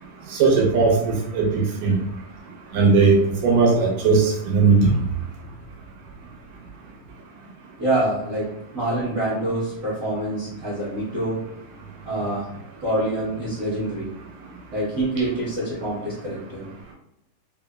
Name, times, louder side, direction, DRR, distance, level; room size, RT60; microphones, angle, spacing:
voice 1, 0.3-1.5 1.8-2.0 2.7-4.9, right 4 dB, 80° right, -1 dB, 2.2 m, -18 dB
voice 2, 7.8-8.5 8.7-11.4 12.0-12.5 12.8-14.1 14.7-16.6, right 1 dB, 60° right, -11 dB, 0.8 m, -26 dB
5.1 x 2.0 x 2.3 m, 0.83 s
omnidirectional pair, 3.8 m